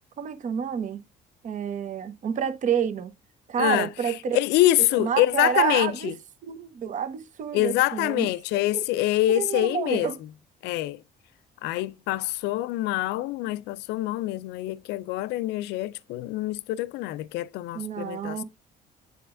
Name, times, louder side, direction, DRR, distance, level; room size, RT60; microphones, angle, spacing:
voice 1, 0.2-1.0 1.4-3.1 3.5-4.4 5.0-6.1 6.4-8.3 8.5-8.8 9.4-10.1 17.7-18.4, right 8 dB, 45° right, 0.9 m, -28 dB
voice 2, 3.6-6.1 7.5-10.1 10.6-11.0 11.6-18.4, left 15 dB, 85° left, 0.4 m, -25 dB
7.7 x 4.9 x 2.5 m
cardioid pair, 110°, 17 cm